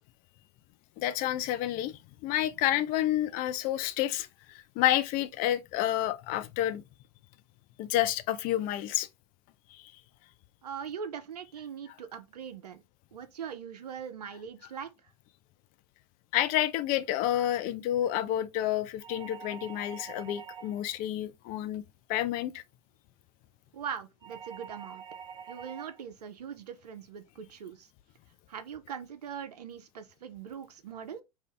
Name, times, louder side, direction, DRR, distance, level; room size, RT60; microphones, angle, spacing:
voice 1, 1.0-6.8 7.8-9.1 9.7-9.8 16.3-21.8 22.1-22.6, left 13 dB, 45° left, 0.4 m, -29 dB
voice 2, 10.6-12.8 13.1-14.9 23.7-25.0 25.5-27.9 28.5-31.2, right 7 dB, 90° right, 0.5 m, -41 dB
sound 1, 19.0-20.9 24.2-26.0, right 7 dB, 20° right, 0.5 m, -45 dB
2.6 x 2.4 x 3.2 m
hypercardioid pair, 100°, 20 cm